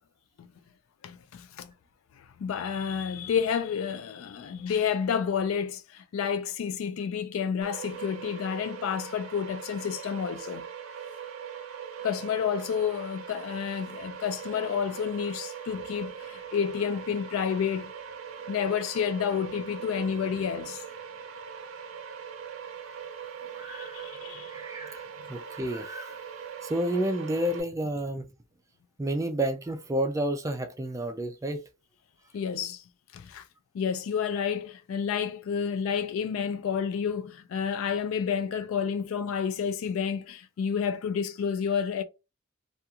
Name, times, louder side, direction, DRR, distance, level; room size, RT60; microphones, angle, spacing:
voice 1, 1.0-1.7 2.2-10.6 12.0-17.9 18.5-20.8 23.7-24.5 32.3-32.8 33.1-33.4 33.7-42.0, left 7 dB, 75° left, 0.3 m, -30 dB
sound 1, 7.6-27.6, right 7 dB, 80° right, 0.5 m, -41 dB
voice 2, 23.6-25.0 25.3-26.2 26.6-28.3 29.0-31.6, right 1 dB, 15° right, 0.3 m, -30 dB
2.3 x 2.3 x 2.8 m
head